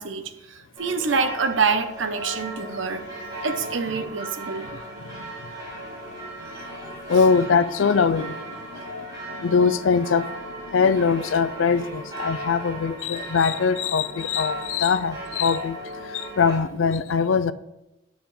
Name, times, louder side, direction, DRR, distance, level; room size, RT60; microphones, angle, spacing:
voice 1, 0.0-3.1 3.4-4.7, right 5 dB, 80° right, 0.8 m, -26 dB
sound 1, 0.8-16.6, right 1 dB, 25° right, 3.7 m, -36 dB
voice 2, 4.7-5.3 7.1-8.6 8.9-9.1 9.4-10.3 10.7-15.8 16.1-17.5, left 5 dB, 85° left, 0.5 m, -22 dB
10.5 x 8.1 x 3.2 m
head